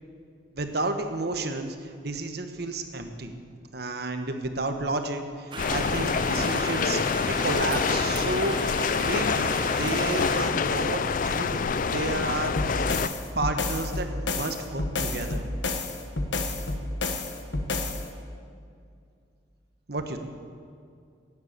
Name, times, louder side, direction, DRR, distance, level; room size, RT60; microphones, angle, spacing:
voice 1, 0.5-3.3 3.7-8.6 8.9-9.5 9.8-11.6 11.9-13.0 13.3-15.4 19.9-20.2, right 2 dB, 55° right, 7 dB, 1.2 m, -31 dB
sound 1, 5.5-10.5, right 3 dB, 25° right, 1.0 m, -36 dB
sound 2, 5.6-13.1, left 5 dB, 45° left, 0.4 m, -26 dB
sound 3, 12.6-18.0, left 2 dB, 70° left, 1.3 m, -30 dB
12.5 x 9.6 x 8.1 m, 2.3 s
head